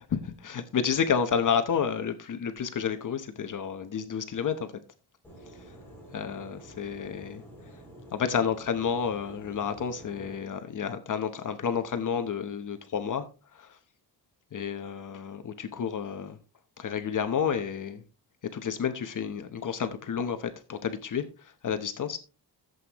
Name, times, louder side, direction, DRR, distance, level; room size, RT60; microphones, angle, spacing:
voice 1, 0.1-4.7 6.1-7.4 8.1-13.8 14.5-16.4 16.8-18.0 18.5-22.2, left 7 dB, 50° left, 0.9 m, -30 dB
sound 1, 5.2-10.4, right 1 dB, 5° left, 6.0 m, -49 dB
15.0 x 7.9 x 3.0 m
wide cardioid pair, 165°, 41 cm